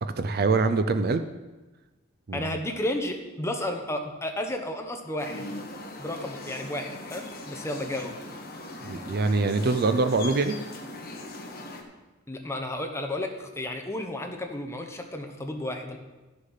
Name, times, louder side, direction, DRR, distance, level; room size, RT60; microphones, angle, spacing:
voice 1, 0.0-1.2 2.3-2.5 8.8-10.6, right 3 dB, 45° right, 9 dB, 0.5 m, -24 dB
voice 2, 2.3-5.5 6.0-8.2 12.3-16.0, left 1 dB, 15° left, 3 dB, 1.1 m, -32 dB
sound 1, 5.2-11.8, left 2 dB, 45° left, 1.4 m, -40 dB
13.5 x 6.6 x 5.6 m, 1.2 s
head